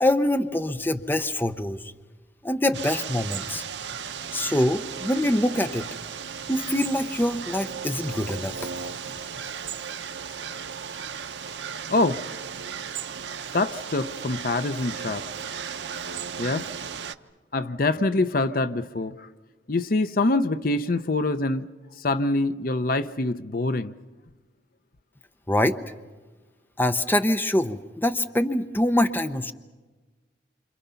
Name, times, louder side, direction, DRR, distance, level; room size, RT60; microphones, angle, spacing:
voice 1, 0.0-1.8 2.4-3.6 4.3-5.9 6.5-8.5 25.5-25.8 26.8-29.5, left 1 dB, 10° left, 0.7 m, -24 dB
sound 1, 2.7-17.1, right 7 dB, 75° right, 0.8 m, -35 dB
voice 2, 11.9-12.2 13.5-15.2 16.4-16.7 17.5-19.3 19.7-21.7 22.0-23.9, left 2 dB, 50° left, 0.7 m, -25 dB
28.5 x 26.5 x 5.7 m
head